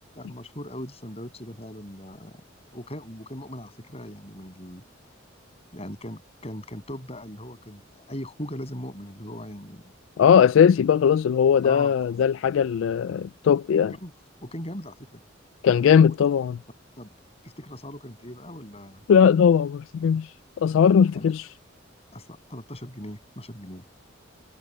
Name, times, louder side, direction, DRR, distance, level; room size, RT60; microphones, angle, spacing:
voice 1, 0.2-2.4 2.7-4.8 5.7-9.8 11.6-11.9 14.0-14.1 14.4-15.2 16.0-16.1 17.0-17.1 17.4-19.0 21.1-21.3 22.1-23.8, left 1 dB, 30° left, 7.2 m, -39 dB
voice 2, 10.2-13.9 15.6-16.6 19.1-21.5, left 7 dB, 80° left, 0.3 m, -19 dB
head